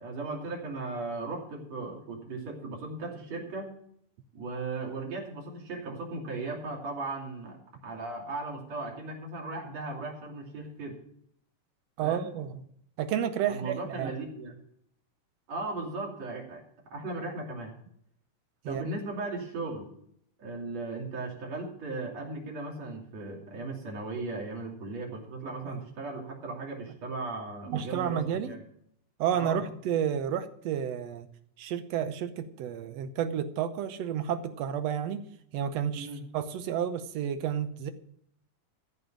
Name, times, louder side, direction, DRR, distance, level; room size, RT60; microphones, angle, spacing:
voice 1, 0.0-3.7 4.3-7.6 7.8-11.0 12.0-12.3 13.5-14.6 15.5-16.6 16.9-17.7 18.7-19.9 20.4-28.6 29.3-29.6 35.9-36.2, right 3 dB, 55° right, -1 dB, 3.9 m, -37 dB
voice 2, 12.0-12.6 13.0-14.2 18.6-18.8 25.6-25.8 27.7-28.6 29.2-31.3 31.6-35.2 35.5-36.1 36.3-37.9, right 9 dB, 70° right, 10 dB, 1.6 m, -31 dB
14.5 x 5.5 x 8.9 m, 0.69 s
omnidirectional pair, 3.7 m